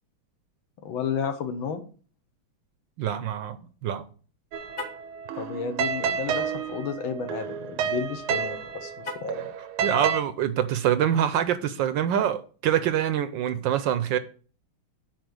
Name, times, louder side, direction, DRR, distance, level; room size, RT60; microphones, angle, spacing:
voice 1, 0.9-1.8 5.3-9.5, left 6 dB, 70° left, 1.7 m, -32 dB
voice 2, 3.0-4.0 9.8-14.2, right 10 dB, 75° right, 1.2 m, -25 dB
sound 1, 4.5-10.2, right 7 dB, 90° right, 1.7 m, -30 dB
Car, 4.7-5.1 9.0-9.5, left 2 dB, 30° left, 1.3 m, -38 dB
9.2 x 4.4 x 6.2 m
omnidirectional pair, 2.3 m